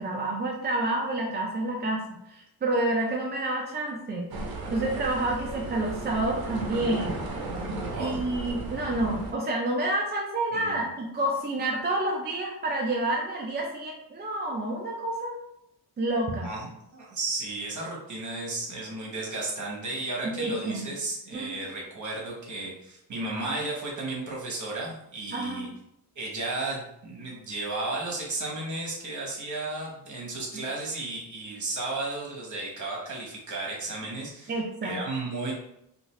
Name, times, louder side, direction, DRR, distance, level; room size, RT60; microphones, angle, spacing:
voice 1, 0.0-4.3 4.7-7.2 8.0-15.4 16.0-16.5 20.2-20.9 21.3-21.6 25.3-25.7 30.5-30.6 34.5-35.0, right 2 dB, 25° right, -2 dB, 0.4 m, -29 dB
sound 1, 4.3-9.3, right 2 dB, 65° right, 0.7 m, -35 dB
voice 2, 7.9-8.2 10.5-10.9 16.4-25.7 26.1-34.5 34.8-35.5, right 2 dB, 50° right, -3 dB, 1.1 m, -34 dB
2.6 x 2.5 x 3.1 m, 0.80 s
cardioid pair, 105°, 38 cm